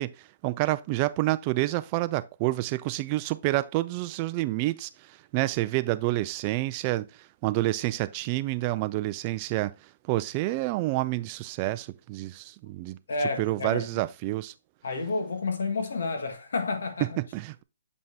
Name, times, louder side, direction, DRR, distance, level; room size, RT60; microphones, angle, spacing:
voice 1, 0.0-9.7 10.0-13.0 13.4-14.5 17.0-17.6, right 18 dB, 25° right, 0.3 m, -28 dB
voice 2, 13.1-14.0 14.8-17.2, left 3 dB, 75° left, 1.6 m, -30 dB
7.3 x 5.4 x 2.7 m
hypercardioid pair, 170°, 0 cm